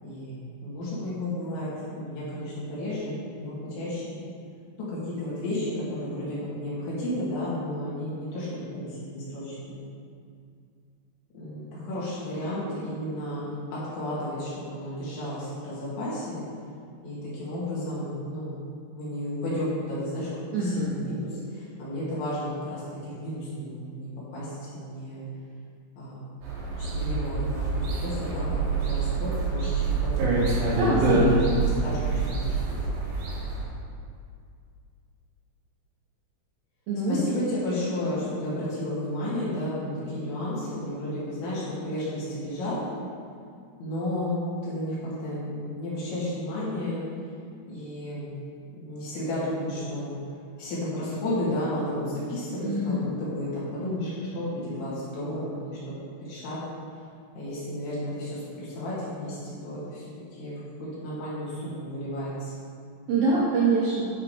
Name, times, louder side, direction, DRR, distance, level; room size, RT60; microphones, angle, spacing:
voice 1, 0.0-4.1 4.9-9.8 11.3-13.5 13.7-16.4 17.0-18.6 18.9-20.3 20.6-25.3 26.0-26.3 26.8-32.8 37.1-42.8 43.8-47.0 47.7-48.3 48.7-50.2 50.6-56.6 57.3-60.0 60.3-62.5, left 1 dB, 75° left, -9 dB, 5.0 m, -33 dB
voice 2, 20.5-20.9 30.8-31.5 36.9-37.3 52.6-53.0 63.1-64.1, right 2 dB, 75° right, -5 dB, 2.1 m, -25 dB
sound 1, 26.4-33.6, right 3 dB, 90° right, 4.3 m, -26 dB
11.5 x 4.8 x 5.3 m, 2.3 s
omnidirectional pair, 5.3 m